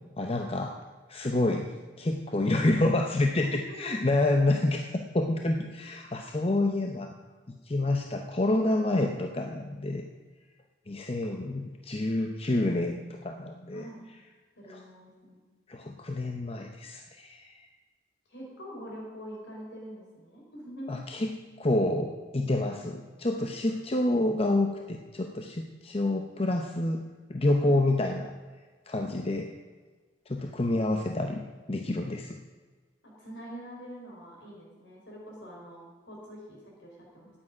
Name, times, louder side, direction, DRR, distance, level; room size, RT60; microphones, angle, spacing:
voice 1, 0.2-0.8 1.1-1.7 2.0-7.1 7.5-10.1 10.9-13.8 14.7-14.8 15.7-17.6 20.9-21.3 21.6-27.0 27.3-28.3 28.9-29.5 30.3-32.4, left 2 dB, 30° left, 4 dB, 0.8 m, -28 dB
voice 2, 13.7-14.1 14.6-15.4 18.3-20.9 27.6-27.8 29.0-29.1 33.0-37.3, equal, 65° left, -2 dB, 4.9 m, -45 dB
9.4 x 8.9 x 9.8 m, 1.4 s
head